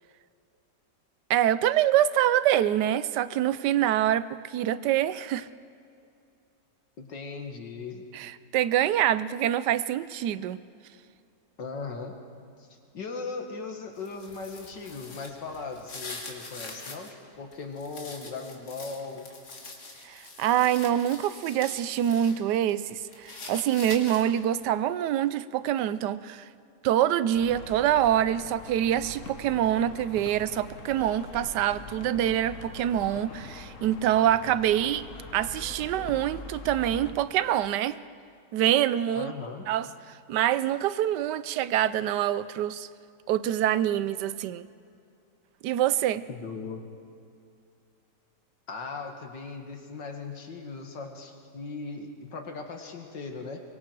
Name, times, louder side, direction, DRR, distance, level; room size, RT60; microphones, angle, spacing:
voice 1, 1.3-5.5 8.1-10.6 20.0-26.5 26.8-35.0 35.3-38.0 38.5-39.3 39.7-42.9 43.3-44.7 45.6-46.2, right 11 dB, 75° right, 15 dB, 1.2 m, -25 dB
voice 2, 7.0-8.0 11.6-12.1 12.9-19.3 39.1-39.7 46.3-46.8 48.7-53.6, left 4 dB, 85° left, 4 dB, 2.5 m, -38 dB
sound 1, 14.0-17.1 17.5-22.4 22.7-24.5, left 3 dB, 65° left, 2.8 m, -44 dB
sound 2, 27.3-37.1, left 3 dB, 50° left, 1.6 m, -43 dB
24.0 x 23.0 x 4.7 m, 2.4 s
omnidirectional pair, 1.9 m